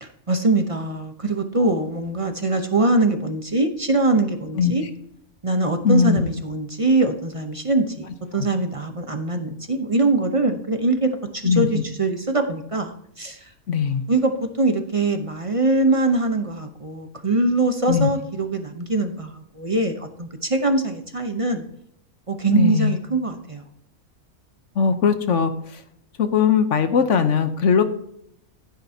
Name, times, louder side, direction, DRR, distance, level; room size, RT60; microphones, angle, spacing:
voice 1, 0.0-4.9 5.4-8.1 8.3-13.5 14.1-14.3 14.6-21.7 22.3-23.6, right 2 dB, 30° right, 6 dB, 0.7 m, -22 dB
voice 2, 5.8-6.3 11.4-11.7 13.7-14.0 17.9-18.1 22.5-23.0 24.8-25.5 26.2-27.8, left 6 dB, 60° left, 9 dB, 1.1 m, -19 dB
15.0 x 9.0 x 2.8 m, 0.71 s
omnidirectional pair, 1.5 m